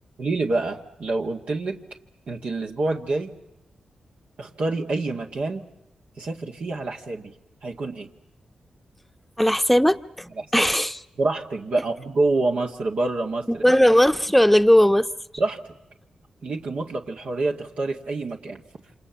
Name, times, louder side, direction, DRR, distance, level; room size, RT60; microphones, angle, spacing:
voice 1, 0.2-1.8 2.3-3.3 4.4-5.6 6.2-7.3 7.6-8.1 10.4-10.7 11.2-13.6 15.4-15.6 16.4-18.6, right 2 dB, 70° right, 2.0 m, -27 dB
voice 2, 9.4-11.0 13.6-15.1, equal, 5° left, 1.0 m, -18 dB
28.0 x 26.0 x 7.2 m
supercardioid pair, 45°, 2 cm